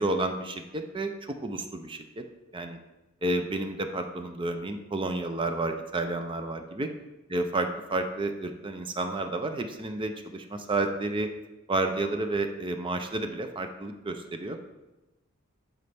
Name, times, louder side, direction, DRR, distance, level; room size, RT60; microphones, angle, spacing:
voice 1, 0.0-2.2 2.5-2.8 3.2-6.9 7.3-11.3 11.7-14.6, right 2 dB, 25° right, 7 dB, 0.5 m, -31 dB
11.0 x 4.2 x 3.4 m, 1.0 s
head